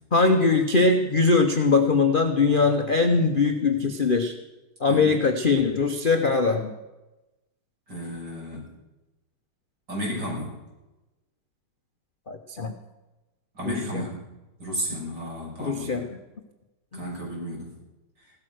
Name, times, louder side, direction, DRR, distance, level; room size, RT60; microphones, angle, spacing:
voice 1, 0.1-4.3 4.8-6.7 12.3-12.7 13.7-14.0 15.6-16.0, left 4 dB, 40° left, 5 dB, 0.8 m, -21 dB
voice 2, 7.9-8.7 9.9-10.6 13.5-14.2 14.6-15.9 16.9-17.7, equal, 60° right, -3 dB, 6.5 m, -33 dB
16.0 x 12.5 x 6.4 m, 1.0 s
omnidirectional pair, 2.2 m